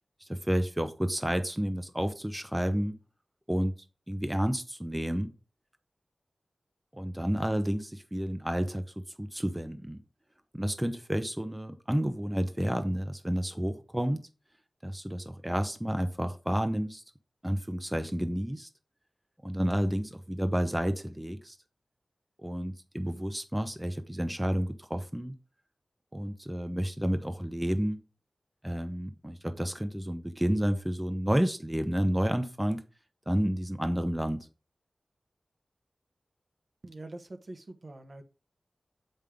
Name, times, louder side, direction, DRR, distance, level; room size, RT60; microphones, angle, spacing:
voice 1, 0.2-2.9 3.5-3.7 4.1-5.3 6.9-10.0 10.5-14.2 14.8-17.0 17.4-18.7 19.4-21.6 22.4-25.3 26.1-28.0 28.6-32.8 33.3-34.5, equal, 10° right, 8 dB, 0.7 m, -30 dB
voice 2, 36.8-38.2, right 2 dB, 50° right, 6 dB, 1.0 m, -44 dB
7.3 x 5.3 x 3.7 m, 0.33 s
wide cardioid pair, 80°, 0 cm